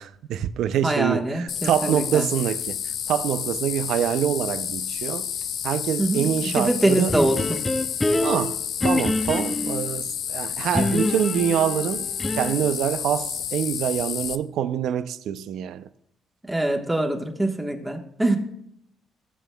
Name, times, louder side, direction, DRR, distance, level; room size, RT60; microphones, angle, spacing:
voice 1, 0.0-2.8 3.1-5.3 5.6-7.1 8.2-15.9, right 10 dB, 75° right, 0.4 m, -25 dB
voice 2, 0.8-2.3 6.0-7.6 16.4-18.4, right 1 dB, 10° right, 1.2 m, -24 dB
sound 1, 1.5-14.4, left 9 dB, 65° left, 0.4 m, -30 dB
sound 2, 7.1-9.9 10.7-12.7, left 1 dB, 10° left, 0.6 m, -26 dB
15.5 x 7.0 x 2.2 m
cardioid pair, 105°, 0 cm